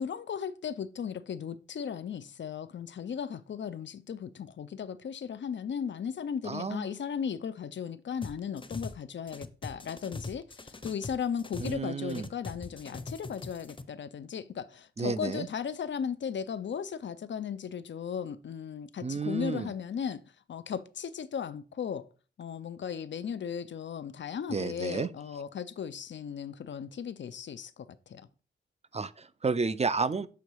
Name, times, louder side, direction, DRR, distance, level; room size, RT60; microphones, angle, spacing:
voice 1, 0.0-20.2 20.5-22.1 22.4-28.3, left 7 dB, 65° left, 0.6 m, -36 dB
voice 2, 6.4-6.9 11.6-12.3 15.0-15.5 19.0-19.7 24.5-25.1 28.9-30.3, right 4 dB, 30° right, 0.6 m, -31 dB
sound 1, 8.2-9.0 9.3-11.8 12.1-13.8, left 3 dB, 25° left, 0.8 m, -41 dB
7.0 x 3.8 x 4.7 m
cardioid pair, 55°, 20 cm